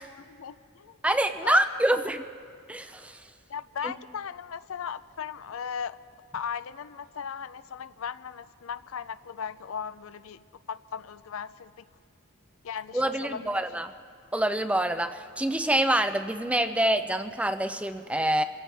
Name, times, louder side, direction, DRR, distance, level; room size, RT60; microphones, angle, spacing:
voice 1, 0.2-1.0 1.4-1.8 3.5-6.0 6.3-10.4 10.7-11.9 12.6-13.6, left 7 dB, 75° left, 15 dB, 0.4 m, -37 dB
voice 2, 1.0-2.2 2.7-3.2 3.8-3.9 12.9-13.9 14.3-18.4, right 1 dB, 5° right, 9 dB, 0.4 m, -26 dB
27.0 x 16.0 x 3.4 m, 2.2 s
head